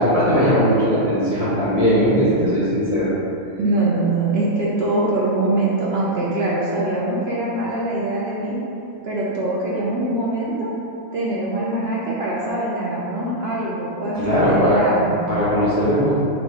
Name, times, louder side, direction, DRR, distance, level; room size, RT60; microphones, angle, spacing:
voice 1, 0.0-3.1 14.2-14.8 15.3-16.2, equal, 40° left, -10 dB, 0.5 m, -18 dB
voice 2, 3.6-8.6 9.0-10.7 11.1-15.2, right 2 dB, 60° right, -6 dB, 0.7 m, -23 dB
4.0 x 3.2 x 3.5 m, 2.8 s
omnidirectional pair, 1.5 m